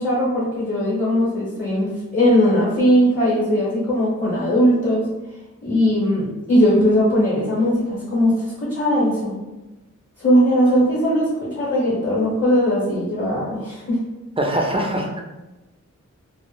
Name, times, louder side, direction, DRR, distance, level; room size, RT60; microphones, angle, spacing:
voice 1, 0.0-5.0 5.6-9.3 10.2-14.0, equal, 35° left, -7 dB, 0.8 m, -19 dB
voice 2, 14.4-15.2, right 1 dB, 20° right, 1 dB, 0.4 m, -22 dB
2.1 x 2.0 x 2.9 m, 1.1 s
wide cardioid pair, 70°, 30 cm